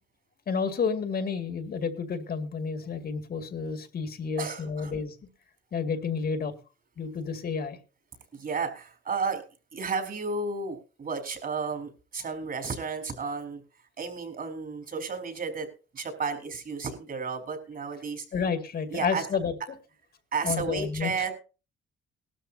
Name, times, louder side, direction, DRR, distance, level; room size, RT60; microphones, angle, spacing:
voice 1, 0.5-5.2 5.7-6.5 7.0-7.8 18.3-19.5 20.4-21.3, left 5 dB, 50° left, 2.3 m, -30 dB
voice 2, 4.4-4.9 8.3-9.4 9.7-13.6 14.0-15.7 15.9-18.3 18.9-19.2 20.3-21.3, right 4 dB, 45° right, 4.8 m, -32 dB
19.0 x 12.5 x 2.8 m
cardioid pair, 90°, 20 cm